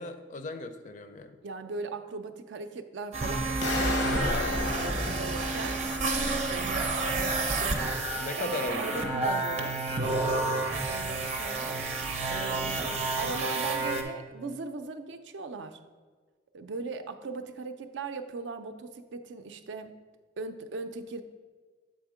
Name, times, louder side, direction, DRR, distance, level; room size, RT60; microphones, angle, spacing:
voice 1, 0.0-1.4 8.2-9.2, left 3 dB, 45° left, 9 dB, 0.4 m, -37 dB
voice 2, 1.4-5.8 6.5-7.9 8.4-9.8 10.9-11.8 12.3-12.8 13.2-15.8 16.5-20.0 20.4-21.2, right 4 dB, 80° right, 8 dB, 0.5 m, -39 dB
sound 1, 3.1-14.0, right 3 dB, 40° right, 0.7 m, -30 dB
sound 2, 3.6-6.5, left 3 dB, 75° left, 0.8 m, -34 dB
7.5 x 3.6 x 4.9 m, 1.4 s
head